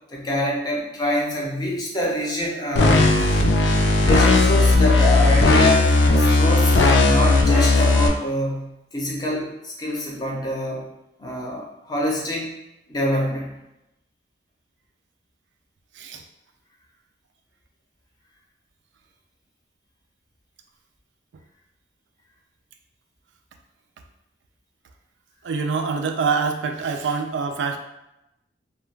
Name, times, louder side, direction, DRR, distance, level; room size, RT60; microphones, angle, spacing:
voice 1, 0.1-3.2 4.0-10.9 11.2-12.5 12.9-13.6, left 1 dB, 25° left, -2 dB, 0.6 m, -25 dB
sound 1, 2.8-8.1, left 2 dB, 75° left, 0.4 m, -16 dB
voice 2, 25.4-27.8, right 5 dB, 85° right, 6 dB, 0.3 m, -25 dB
2.3 x 2.2 x 3.1 m, 0.90 s
head